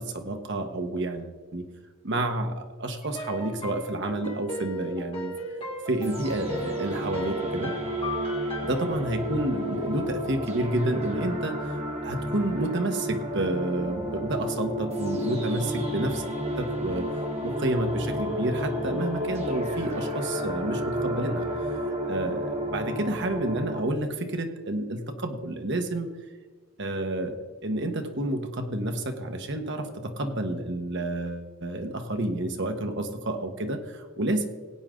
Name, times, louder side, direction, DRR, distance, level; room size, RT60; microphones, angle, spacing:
voice 1, 0.0-1.7 2.0-5.3 5.9-7.7 8.6-11.8 12.0-16.2 16.6-17.1 17.4-21.8 22.1-26.1 26.8-34.5, right 1 dB, 55° right, 6 dB, 1.2 m, -29 dB
sound 1, 3.0-8.8, equal, 25° left, 2.3 m, -36 dB
sound 2, 6.0-23.8, equal, 30° right, 1.4 m, -32 dB
17.0 x 9.1 x 3.8 m, 1.4 s
head